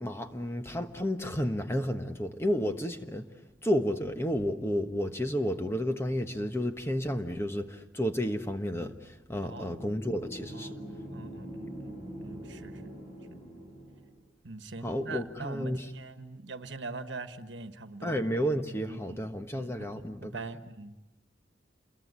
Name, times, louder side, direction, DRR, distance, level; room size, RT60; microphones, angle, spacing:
voice 1, 0.0-3.2 3.6-10.7 14.8-15.9 18.0-20.5, equal, 15° left, 7 dB, 1.3 m, -31 dB
sound 1, 9.3-14.2, right 1 dB, 30° left, 6.6 m, -44 dB
voice 2, 9.4-9.8 10.5-10.8 11.1-12.9 13.3-13.4 14.4-18.2 18.9-19.2 19.5-20.9, right 3 dB, 80° right, 9 dB, 1.4 m, -43 dB
28.5 x 22.0 x 8.4 m, 1.0 s
head